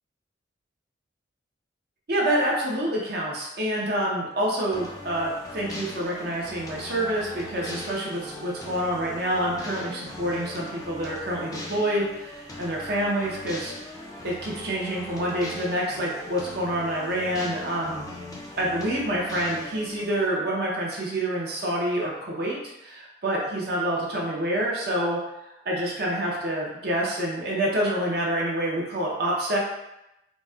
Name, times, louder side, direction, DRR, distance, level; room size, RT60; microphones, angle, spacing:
voice 1, 2.1-13.7 14.2-18.1 18.6-25.2 25.6-29.6, right 1 dB, 55° right, -3 dB, 0.7 m, -27 dB
sound 1, 4.7-20.3, left 1 dB, 20° left, 0.5 m, -40 dB
3.9 x 2.1 x 2.3 m, 0.90 s
head